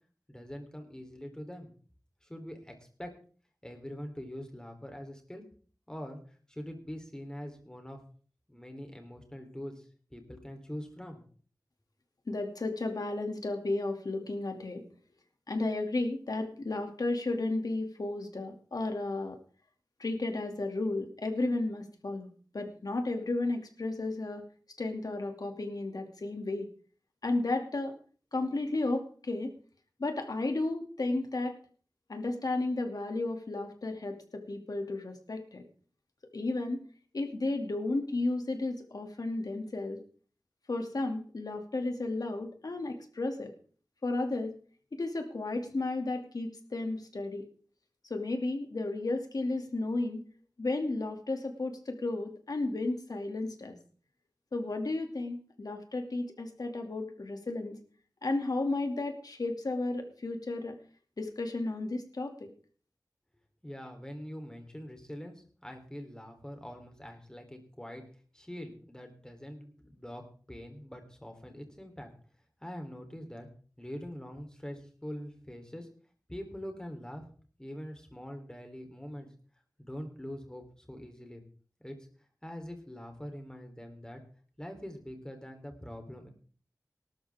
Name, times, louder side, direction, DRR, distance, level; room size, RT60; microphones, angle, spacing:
voice 1, 0.3-1.7 2.2-3.1 3.6-5.4 5.9-8.0 8.5-11.2 63.6-68.0 68.3-72.1 72.6-73.5 73.8-75.9 76.3-77.2 77.6-79.3 79.8-81.4 81.8-82.0 82.4-84.2 84.6-86.3, equal, 10° left, 4 dB, 3.6 m, -44 dB
voice 2, 12.3-14.8 15.5-19.4 20.0-22.3 22.5-24.5 24.8-26.7 27.2-27.9 28.3-29.5 30.0-31.6 32.1-35.6 36.3-36.8 37.1-40.0 40.7-43.5 44.0-44.6 44.9-47.4 48.1-50.3 50.6-53.8 54.5-57.8 58.2-60.8 61.2-62.5, left 2 dB, 70° left, 5 dB, 2.5 m, -33 dB
18.0 x 13.0 x 3.6 m, 0.43 s
wide cardioid pair, 65°, 7 cm